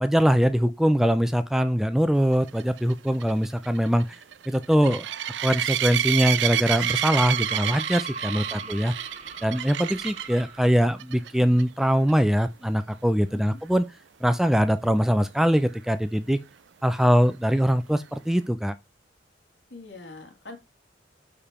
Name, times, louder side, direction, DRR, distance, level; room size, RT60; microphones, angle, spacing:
voice 1, 0.0-4.1 4.5-5.1 5.4-8.9 9.4-13.9 14.2-16.4 16.8-18.7, equal, ahead, 0.4 m, -22 dB
sound 1, 2.5-10.4 11.0-11.3 11.6-11.7 12.1-12.2 15.8-15.9, right 12 dB, 70° right, 0.4 m, -29 dB
sound 2, 6.8-11.0, right 4 dB, 35° right, 1.4 m, -38 dB
voice 2, 19.7-20.6, left 2 dB, 65° left, 2.4 m, -43 dB
6.9 x 5.2 x 4.2 m
head